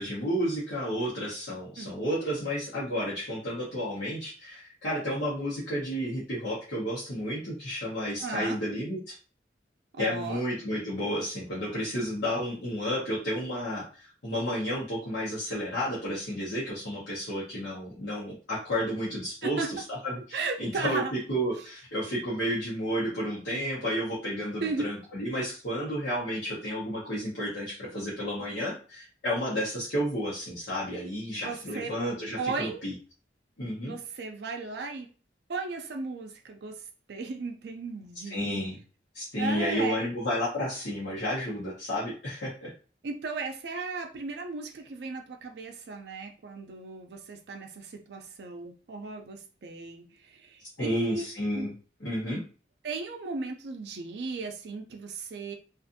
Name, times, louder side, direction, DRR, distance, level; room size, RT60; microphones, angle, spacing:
voice 1, 0.0-9.1 10.0-19.6 20.0-32.9 33.6-33.9 38.3-38.8 39.1-42.7 50.8-51.7 52.0-52.4, equal, 85° left, -7 dB, 0.9 m, -31 dB
voice 2, 8.2-8.6 9.9-10.4 19.4-19.7 20.3-21.1 21.6-21.7 24.6-24.9 31.3-31.9 32.4-32.8 33.8-35.1 35.5-38.7 39.4-40.1 43.0-51.2 51.5-51.7 52.8-55.5, right 3 dB, 70° right, 4 dB, 0.4 m, -35 dB
2.5 x 2.4 x 2.6 m, 0.36 s
head